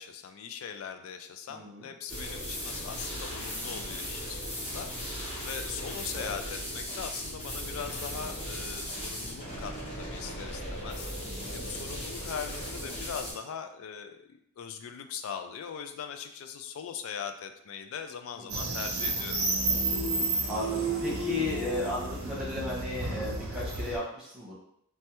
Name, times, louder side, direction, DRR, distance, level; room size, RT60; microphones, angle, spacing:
voice 1, 0.0-4.9 5.4-11.1 11.5-19.4, left 7 dB, 65° left, 8 dB, 0.3 m, -40 dB
voice 2, 1.5-1.9 6.1-6.4 11.2-11.7 18.4-18.6 20.5-24.5, left 1 dB, 5° right, -7 dB, 0.9 m, -35 dB
sound 1, 2.1-13.3, equal, 30° left, 0.9 m, -37 dB
sound 2, 7.2-12.3, equal, 30° right, 0.7 m, -49 dB
sound 3, 18.5-24.0, right 2 dB, 70° right, 0.6 m, -31 dB
3.3 x 2.1 x 2.9 m, 0.73 s
head